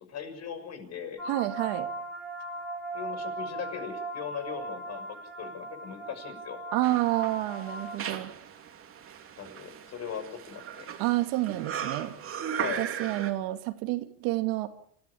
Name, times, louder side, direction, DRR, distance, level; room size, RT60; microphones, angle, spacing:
voice 1, 0.1-1.2 2.9-5.1 5.4-6.6 9.4-10.9 12.5-12.9, left 7 dB, 40° left, 7 dB, 6.4 m, -39 dB
sound 1, 1.2-8.0, right 2 dB, ahead, 5.1 m, -38 dB
voice 2, 1.3-1.9 6.7-8.3 11.0-12.1 12.8-14.7, right 17 dB, 70° right, 7 dB, 2.6 m, -29 dB
sound 2, 6.8-13.3, right 8 dB, 35° right, 3.0 m, -38 dB
28.0 x 15.0 x 8.5 m, 0.69 s
supercardioid pair, 125°, 38 cm